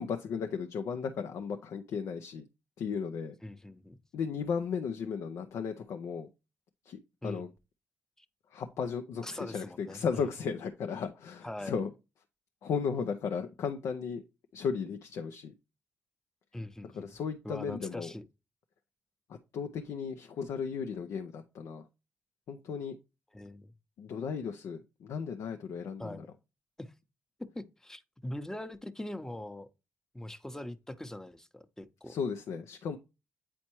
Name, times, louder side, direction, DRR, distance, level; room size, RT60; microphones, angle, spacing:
voice 1, 0.0-2.4 2.8-3.4 4.1-6.3 6.9-7.5 8.5-11.9 12.6-14.2 14.5-15.5 16.8-18.1 19.3-21.8 22.5-23.0 24.0-26.2 32.1-33.0, left 6 dB, 75° left, 0.5 m, -35 dB
voice 2, 3.4-4.0 7.2-7.4 9.2-10.3 11.4-11.8 16.5-17.1 17.4-18.3 23.3-23.7 26.0-26.3 26.8-26.9 27.5-29.7 30.1-32.1, left 1 dB, 10° left, 0.8 m, -42 dB
8.4 x 4.3 x 3.0 m
supercardioid pair, 50°, 5 cm